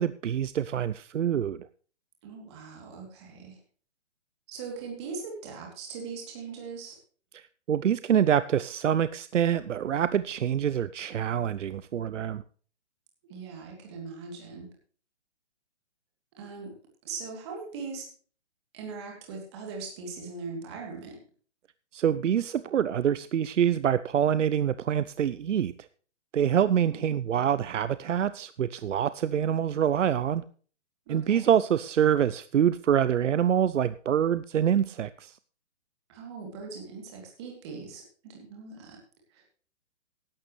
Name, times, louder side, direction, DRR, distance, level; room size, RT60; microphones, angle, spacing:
voice 1, 0.0-1.7 7.3-7.4 7.7-12.4 21.9-25.9 26.3-30.4 31.1-35.4, right 9 dB, 85° right, 15 dB, 0.7 m, -26 dB
voice 2, 2.2-3.6 4.5-7.0 13.3-14.7 16.4-16.7 17.0-18.0 18.7-21.2 26.9-27.0 31.1-31.5 36.1-39.0 39.3-39.4, right 4 dB, 25° right, 0 dB, 3.0 m, -40 dB
15.5 x 11.5 x 3.2 m, 0.42 s
hypercardioid pair, 170°, 36 cm